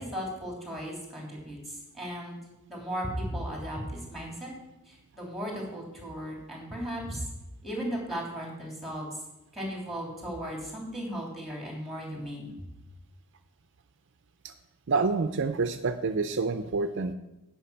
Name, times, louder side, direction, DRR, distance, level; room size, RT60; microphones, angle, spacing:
voice 1, 0.0-2.4 2.7-4.5 4.9-7.2 7.6-9.1 9.5-12.7, equal, ahead, -2 dB, 3.3 m, -36 dB
voice 2, 14.9-17.1, right 4 dB, 55° right, 9 dB, 0.5 m, -27 dB
10.0 x 5.8 x 8.4 m, 0.95 s
head